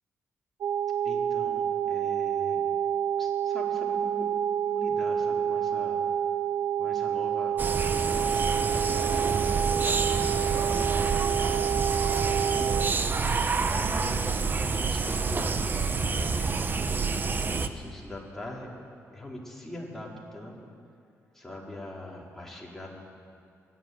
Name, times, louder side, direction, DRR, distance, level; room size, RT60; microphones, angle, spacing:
sound 1, 0.6-12.9, right 9 dB, 80° right, 0.6 m, -28 dB
voice 1, 1.0-2.7 3.2-4.3 4.6-6.0 6.8-9.4 9.8-10.4 10.7-12.9 13.7-15.6 16.2-18.7 19.1-20.6 21.3-22.9, left 1 dB, 5° left, -3 dB, 4.6 m, -42 dB
sound 2, 7.6-17.7, right 4 dB, 35° right, 1.0 m, -28 dB
23.5 x 11.5 x 9.5 m, 2.4 s
cardioid pair, 105°, 6 cm